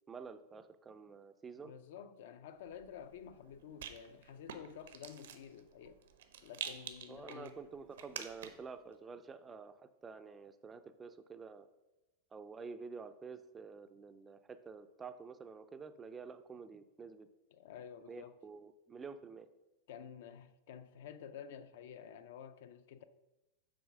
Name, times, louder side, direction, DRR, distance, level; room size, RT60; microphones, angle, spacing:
voice 1, 0.0-1.7 7.1-11.7 12.3-17.3 18.1-19.5, right 5 dB, 10° right, 0.3 m, -49 dB
voice 2, 1.5-6.0 6.4-7.6 17.5-18.4 19.9-23.0, left 8 dB, 60° left, 0.4 m, -51 dB
Rattle, 2.6-8.7, right 8 dB, 85° right, 0.8 m, -49 dB
6.2 x 4.1 x 6.0 m
supercardioid pair, 170°, 0 cm